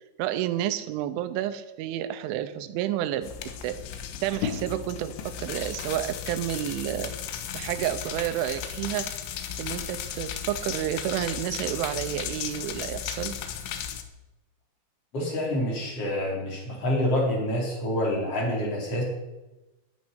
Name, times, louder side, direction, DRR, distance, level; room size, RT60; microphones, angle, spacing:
voice 1, 0.2-3.3 3.6-3.8 4.2-7.1 7.5-9.1 9.6-13.4, right 12 dB, 90° right, 11 dB, 3.2 m, -30 dB
sound 1, 3.2-14.0, left 9 dB, 80° left, 3.5 m, -35 dB
voice 2, 15.1-19.0, left 1 dB, 35° left, -2 dB, 4.6 m, -27 dB
10.5 x 10.5 x 10.0 m, 1.1 s
omnidirectional pair, 5.3 m